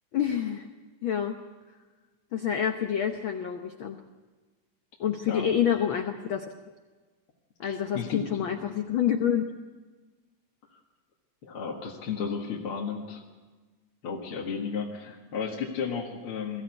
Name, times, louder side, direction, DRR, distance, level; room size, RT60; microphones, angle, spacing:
voice 1, 0.1-0.7 1.0-1.4 2.3-4.0 5.0-6.5 7.6-9.4, left 9 dB, 65° left, 5 dB, 1.3 m, -28 dB
voice 2, 7.6-8.4 10.7-10.8 11.4-13.2 14.0-16.6, left 6 dB, 50° left, -1 dB, 2.4 m, -33 dB
22.0 x 14.5 x 9.5 m, 1.3 s
omnidirectional pair, 3.5 m